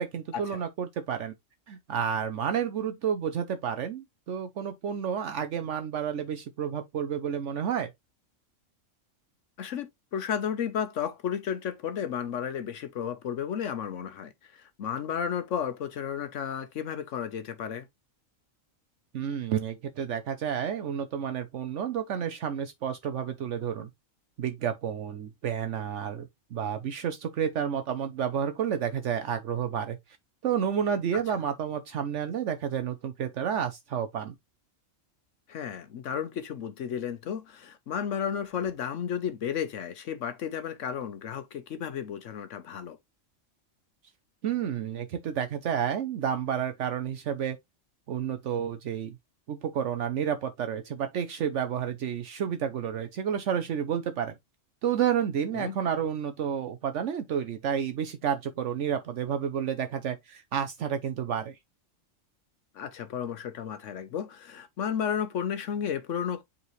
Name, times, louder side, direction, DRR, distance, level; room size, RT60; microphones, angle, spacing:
voice 1, 0.0-1.3 1.7-7.9 19.1-23.9 24.4-30.0 30.4-34.3 44.4-47.6 48.1-49.1 49.5-54.4 54.8-61.6, right 8 dB, 70° right, 1.0 m, -30 dB
voice 2, 9.6-17.9 31.1-31.2 35.5-43.0 55.5-55.8 62.7-66.4, left 8 dB, 75° left, 1.1 m, -33 dB
8.0 x 4.1 x 3.0 m
omnidirectional pair, 1.3 m